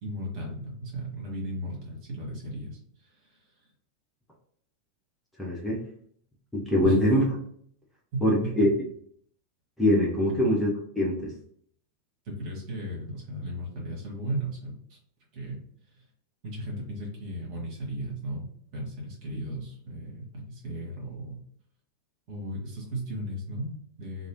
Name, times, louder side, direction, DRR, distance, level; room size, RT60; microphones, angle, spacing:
voice 1, 0.0-3.4 6.8-7.0 8.1-8.7 10.3-10.4 12.2-15.0 15.3-15.6 16.4-21.4 22.3-24.3, right 1 dB, 45° right, -2 dB, 1.5 m, -36 dB
voice 2, 5.4-5.8 6.5-7.2 8.2-8.7 9.8-10.7 11.0-11.3, left 1 dB, 5° left, -4 dB, 0.8 m, -23 dB
3.1 x 2.6 x 2.9 m, 0.63 s
figure-of-eight pair, 90°, 0 cm